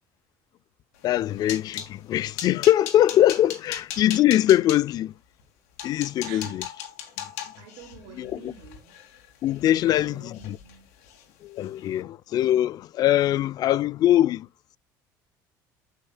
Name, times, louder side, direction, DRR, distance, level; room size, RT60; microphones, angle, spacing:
sound 1, 1.0-1.9 2.4-4.8 5.4-5.5 5.8-10.0 10.3-10.8 11.0-11.2 11.6-11.8, left 10 dB, 85° left, 2.2 m, -37 dB
voice 1, 1.0-5.1 5.8-6.6 8.2-8.5 9.4-10.6 11.4-14.5, left 12 dB, 55° left, 0.4 m, -22 dB
voice 2, 6.2-6.6 7.6-9.0 9.7-10.9, right 8 dB, 85° right, 3.4 m, -47 dB
12.5 x 5.7 x 2.2 m
supercardioid pair, 95°, 8 cm